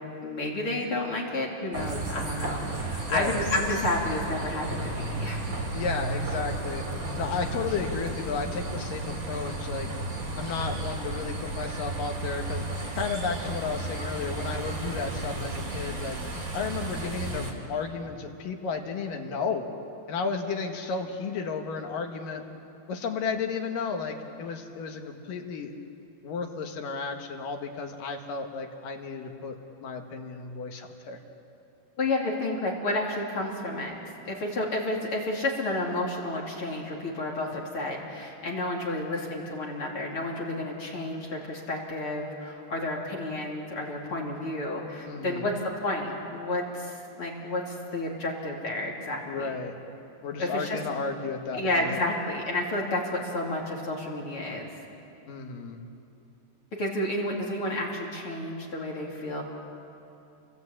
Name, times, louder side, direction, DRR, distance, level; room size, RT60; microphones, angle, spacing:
voice 1, 0.2-5.5 32.0-33.9 34.2-49.5 50.4-50.8 51.5-54.7 56.8-59.4, left 1 dB, 35° left, -2 dB, 3.0 m, -31 dB
sound 1, 1.7-17.5, right 2 dB, 25° right, 2.2 m, -33 dB
voice 2, 3.1-3.4 5.7-6.8 7.2-9.9 10.4-12.7 12.9-16.2 16.5-19.7 20.1-22.4 22.9-25.7 26.2-29.6 29.8-31.2 45.1-45.5 49.2-49.8 50.2-52.0 55.3-55.8, left 5 dB, 60° left, 3 dB, 2.7 m, -33 dB
28.5 x 22.5 x 8.7 m, 2.7 s
omnidirectional pair, 5.1 m